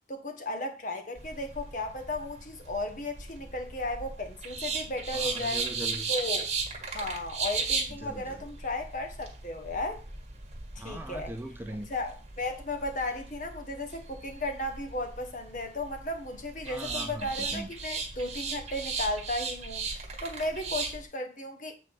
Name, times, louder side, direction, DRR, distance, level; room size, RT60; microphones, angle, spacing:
voice 1, 0.1-5.6 6.1-6.5 6.8-10.0 10.7-11.3 11.9-19.9 20.2-21.7, left 1 dB, 45° left, 1.3 m, -35 dB
sound 1, 1.2-21.0, right 4 dB, 35° right, 1.6 m, -37 dB
voice 2, 5.1-6.1 8.0-8.4 10.8-11.9 16.7-17.7, right 1 dB, 10° right, 0.4 m, -40 dB
8.0 x 4.1 x 5.4 m
head